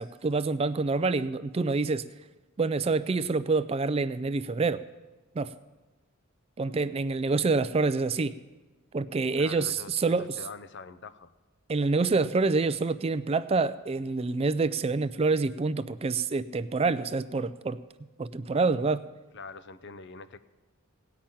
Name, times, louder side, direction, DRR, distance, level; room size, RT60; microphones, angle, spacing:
voice 1, 0.0-2.1 2.6-4.8 5.4-5.5 6.6-8.3 8.9-10.4 11.7-17.8 18.2-19.0, right 3 dB, 30° right, 15 dB, 0.4 m, -27 dB
voice 2, 9.3-11.3 19.3-20.4, left 4 dB, 55° left, 13 dB, 0.6 m, -44 dB
17.5 x 5.9 x 8.8 m, 1.2 s
head